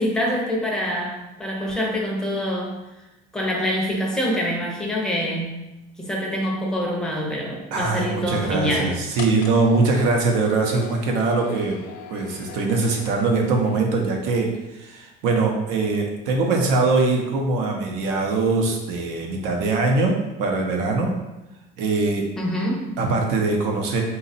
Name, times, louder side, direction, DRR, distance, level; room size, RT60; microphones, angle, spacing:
voice 1, 0.0-2.7 3.3-5.7 6.0-8.9 22.4-23.0, equal, 5° left, -3 dB, 0.6 m, -25 dB
voice 2, 7.7-11.8 12.1-21.1 21.8-22.3 23.0-24.0, right 3 dB, 70° right, 1 dB, 0.9 m, -22 dB
sound 1, 9.2-13.9, left 6 dB, 75° left, 0.6 m, -40 dB
4.0 x 2.4 x 4.0 m, 0.98 s
cardioid pair, 170°, 21 cm